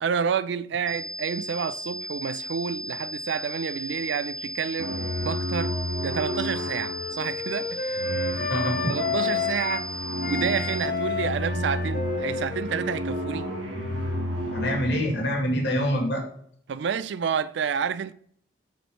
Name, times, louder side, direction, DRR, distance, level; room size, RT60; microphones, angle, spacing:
voice 1, 0.0-4.9 5.2-8.1 8.9-9.9 10.3-13.5 16.7-18.1, right 6 dB, 70° right, 0.3 m, -29 dB
sound 1, 0.9-10.9, equal, 30° left, 1.4 m, -36 dB
sound 2, 4.8-15.3, equal, 90° right, 1.4 m, -31 dB
Wind instrument woodwind instrument, 5.3-9.9 10.2-14.7, left 5 dB, 45° left, 0.5 m, -32 dB
voice 2, 8.5-8.9 14.5-16.3, equal, 65° left, 2.0 m, -25 dB
5.5 x 4.4 x 4.6 m
head